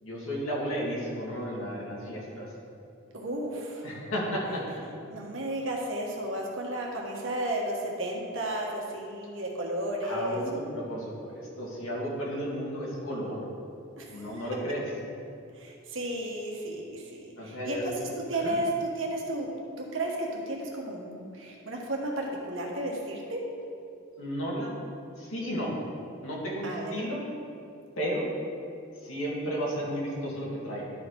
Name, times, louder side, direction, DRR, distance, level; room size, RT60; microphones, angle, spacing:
voice 1, 0.0-2.5 3.8-4.8 10.0-13.4 14.1-14.8 17.4-18.1 18.4-18.6 24.1-24.7 25.2-25.7 26.2-27.2 28.0-28.3 29.0-30.9, equal, 85° left, -4 dB, 2.1 m, -33 dB
voice 2, 3.1-3.8 5.1-10.6 14.0-14.5 15.6-17.9 18.3-19.5 19.8-23.4 26.6-27.0, right 1 dB, 65° right, -1 dB, 1.4 m, -33 dB
12.0 x 4.4 x 4.8 m, 2.5 s
head